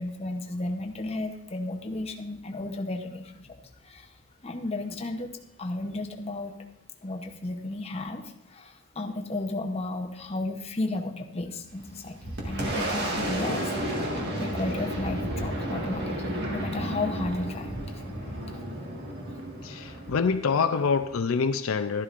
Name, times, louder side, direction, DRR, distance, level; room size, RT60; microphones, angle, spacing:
voice 1, 0.0-4.2 4.4-6.5 7.0-18.6, left 2 dB, 30° left, 3 dB, 0.8 m, -34 dB
Boom, 11.7-21.1, right 1 dB, 50° right, 1.7 m, -32 dB
voice 2, 19.6-22.0, left 5 dB, 75° left, 9 dB, 0.5 m, -26 dB
12.0 x 11.5 x 2.5 m, 0.81 s
head